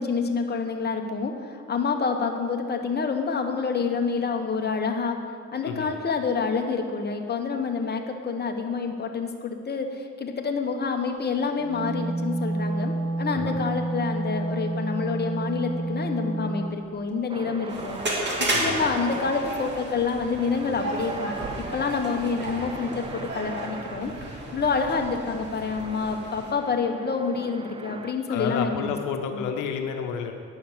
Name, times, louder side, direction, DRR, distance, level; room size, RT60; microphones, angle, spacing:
voice 1, 0.0-5.2 5.5-18.0 18.6-24.1 24.5-28.8 29.3-29.6, left 5 dB, 35° left, 4 dB, 1.2 m, -28 dB
Wind instrument woodwind instrument, 11.6-16.8, right 2 dB, 85° right, 1.6 m, -29 dB
sound 1, 17.3-28.1, right 3 dB, 20° right, 0.5 m, -40 dB
sound 2, 17.7-26.5, right 1 dB, 35° right, 2.3 m, -33 dB
voice 2, 28.3-30.3, left 6 dB, 90° left, 5 dB, 0.9 m, -30 dB
9.9 x 5.7 x 7.3 m, 2.1 s
cardioid pair, 90°, 30 cm